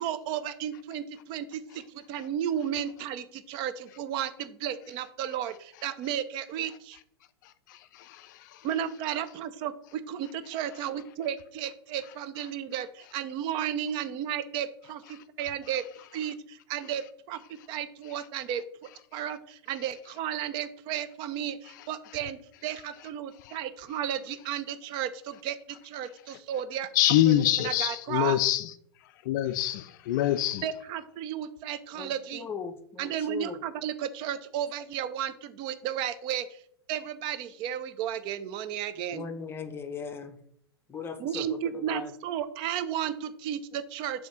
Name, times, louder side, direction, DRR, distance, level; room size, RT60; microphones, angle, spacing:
voice 1, 0.0-7.0 8.6-17.4 17.7-18.6 19.1-26.9 27.3-28.4 30.6-32.5 33.0-36.6 36.9-39.2 41.2-44.3, right 9 dB, 35° right, 0.5 m, -33 dB
voice 2, 7.7-8.7 23.4-23.6 26.9-28.7 29.2-30.7, left 13 dB, 45° left, 0.4 m, -26 dB
voice 3, 31.9-33.6 39.1-40.4 40.9-42.1, left 6 dB, 15° left, 0.8 m, -38 dB
7.3 x 2.8 x 5.6 m
figure-of-eight pair, 95°, 14 cm